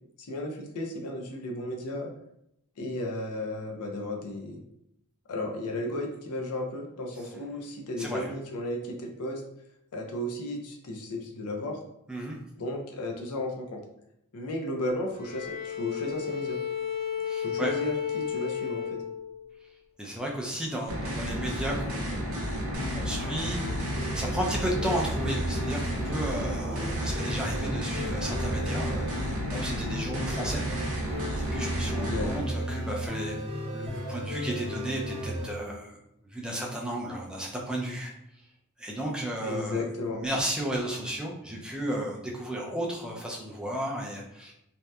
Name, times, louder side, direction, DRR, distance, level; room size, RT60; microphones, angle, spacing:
voice 1, 0.2-2.1 2.8-4.6 5.3-9.4 9.9-11.8 12.6-13.8 14.3-16.6 17.4-19.0 32.0-32.3 39.4-40.2, left 1 dB, 85° left, 2 dB, 0.5 m, -34 dB
voice 2, 8.0-8.3 12.1-12.4 17.2-17.7 20.0-22.6 22.9-30.6 31.3-33.4 33.7-36.0 36.3-38.1 38.8-39.8 40.1-44.5, right 1 dB, 5° right, -2 dB, 0.3 m, -34 dB
Bowed string instrument, 15.1-19.6, left 8 dB, 70° left, 1.1 m, -33 dB
sound 1, 20.9-32.4, equal, 65° right, 0.5 m, -32 dB
sound 2, 22.7-35.5, equal, 25° right, 1.0 m, -34 dB
2.7 x 2.1 x 2.2 m, 0.80 s
head